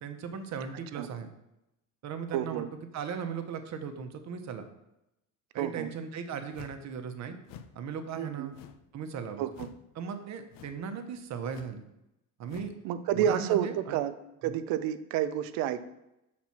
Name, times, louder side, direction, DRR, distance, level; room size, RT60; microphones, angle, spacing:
voice 1, 0.0-1.3 2.0-2.6 2.9-4.6 5.5-7.4 7.7-8.5 8.9-9.5 10.0-11.8 12.4-12.7 13.1-14.0 14.4-14.5, right 6 dB, 50° right, 7 dB, 1.0 m, -37 dB
voice 2, 2.3-2.7 5.6-5.9 8.2-8.5 9.4-9.7 12.8-14.2 14.4-15.8, right 10 dB, 75° right, 12 dB, 0.6 m, -30 dB
sound 1, 6.5-6.9 7.4-7.8 8.5-8.9 9.5-9.9 10.5-10.9 11.5-11.8 12.4-12.8, left 8 dB, 65° left, 0.7 m, -49 dB
6.0 x 4.3 x 5.9 m, 0.88 s
supercardioid pair, 100°, 35 cm